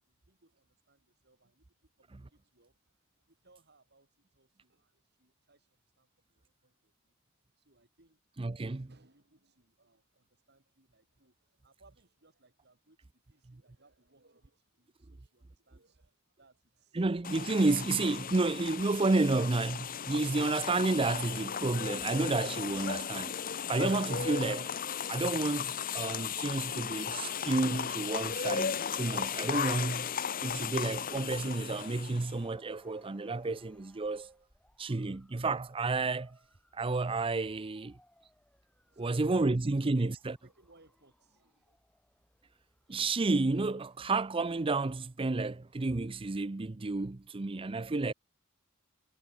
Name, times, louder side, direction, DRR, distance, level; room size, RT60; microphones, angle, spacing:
voice 1, 0.0-2.8 3.2-7.2 7.6-8.2 8.5-17.0 38.9-40.0 40.4-41.8, right 2 dB, 55° right, 7.4 m, -67 dB
voice 2, 8.4-8.9 16.9-24.7 25.1-30.1 30.4-34.3 34.8-36.4 36.7-37.9 39.0-40.4 42.9-48.1, right 3 dB, 25° right, 0.5 m, -31 dB
sound 1, 17.2-32.4, left 7 dB, 45° left, 0.9 m, -36 dB
sound 2, 26.1-45.4, left 1 dB, 5° left, 4.2 m, -68 dB
head